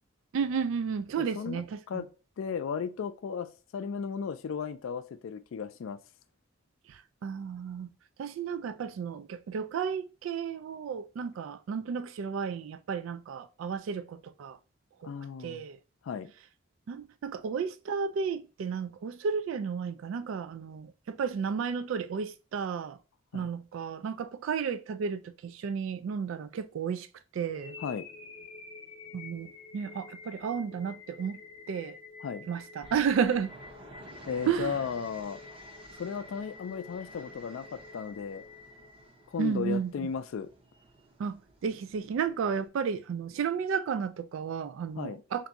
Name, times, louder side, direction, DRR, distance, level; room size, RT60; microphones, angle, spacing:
voice 1, 0.3-2.0 6.9-7.9 8.2-14.6 15.0-15.1 15.4-15.8 16.9-23.0 23.3-27.1 27.3-27.8 29.1-31.4 31.7-32.0 32.5-33.5 34.5-34.8 39.4-39.9 41.2-45.5, right 6 dB, 85° right, 0.3 m, -33 dB
voice 2, 1.2-1.6 1.9-2.0 2.4-6.0 15.0-15.6 16.0-16.3 23.3-23.5 27.8-28.1 32.2-32.5 34.3-35.4 36.0-38.4 39.3-40.5 45.0-45.2, left 6 dB, 90° left, 0.4 m, -35 dB
sound 1, 27.5-39.5, left 4 dB, 30° left, 0.5 m, -49 dB
sound 2, 32.8-42.7, right 2 dB, 25° right, 0.6 m, -53 dB
3.5 x 2.6 x 3.9 m
head